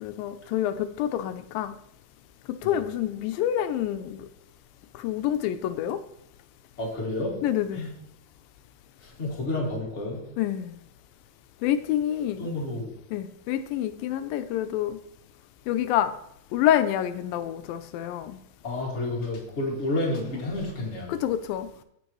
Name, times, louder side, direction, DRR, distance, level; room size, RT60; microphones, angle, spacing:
voice 1, 0.0-1.8 2.5-4.3 4.9-6.0 7.4-7.9 10.4-10.8 11.6-12.5 13.1-15.0 15.7-16.1 16.5-18.4 21.1-21.7, left 11 dB, 85° left, 10 dB, 2.3 m, -27 dB
voice 2, 6.8-7.4 7.8-7.9 9.0-10.3 12.4-12.9 18.6-21.1, left 2 dB, 25° left, -2 dB, 1.7 m, -30 dB
15.0 x 5.2 x 3.0 m, 0.74 s
omnidirectional pair, 4.0 m